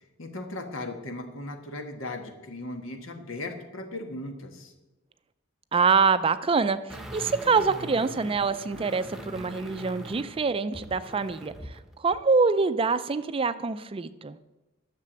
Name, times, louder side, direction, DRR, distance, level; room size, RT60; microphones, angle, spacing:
voice 1, 0.2-4.7, left 2 dB, 80° left, 5 dB, 1.5 m, -37 dB
voice 2, 5.7-14.4, right 4 dB, 25° right, 12 dB, 0.4 m, -25 dB
sound 1, 6.9-11.8 12.1-12.2, right 1 dB, ahead, 0.9 m, -42 dB
10.5 x 6.8 x 7.5 m, 1.1 s
head